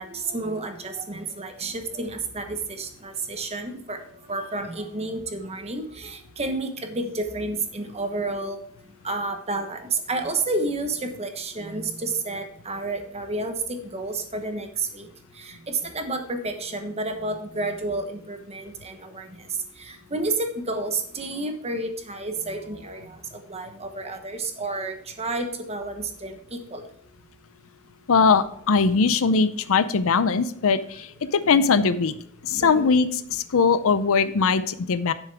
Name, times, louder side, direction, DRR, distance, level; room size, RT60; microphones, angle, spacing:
voice 1, 0.0-8.6 9.0-26.9 28.9-29.1 32.6-32.9, right 2 dB, 30° right, 6 dB, 1.1 m, -31 dB
voice 2, 28.1-32.1 32.4-35.1, left 5 dB, 65° left, 14 dB, 0.5 m, -21 dB
10.0 x 7.3 x 3.5 m, 0.68 s
head